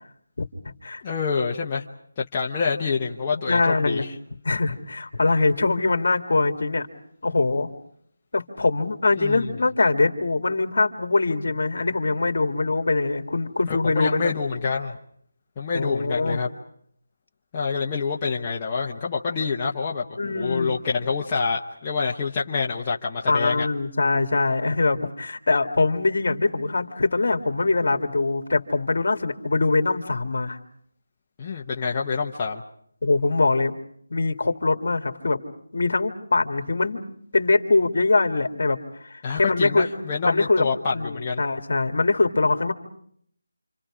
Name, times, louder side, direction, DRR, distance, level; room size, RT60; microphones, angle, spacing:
voice 1, 1.0-1.8 2.2-4.2 9.2-9.5 13.7-15.0 15.6-16.5 17.5-23.7 31.4-32.6 39.2-41.4, left 5 dB, 20° left, -3 dB, 0.9 m, -27 dB
voice 2, 3.5-4.1 4.4-6.9 7.2-7.7 8.3-14.3 15.7-16.4 20.2-20.8 23.3-30.6 33.0-33.7 34.1-35.4 35.7-37.0 37.3-38.8 39.1-39.9 40.2-40.7 40.9-42.7, left 3 dB, 55° left, 6 dB, 2.0 m, -23 dB
28.5 x 26.5 x 5.0 m, 0.67 s
figure-of-eight pair, 175°, 0 cm